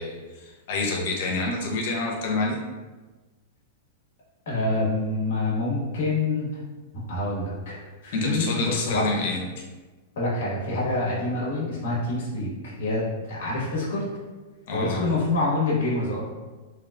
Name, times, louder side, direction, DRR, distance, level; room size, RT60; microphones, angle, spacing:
voice 1, 0.0-2.6 8.1-9.6 14.7-15.0, left 2 dB, 45° left, -1 dB, 0.7 m, -28 dB
voice 2, 4.4-6.5 7.1-9.0 10.1-14.1 14.7-16.2, left 2 dB, 65° left, -6 dB, 1.3 m, -26 dB
3.4 x 2.4 x 3.4 m, 1.3 s
supercardioid pair, 175°, 0 cm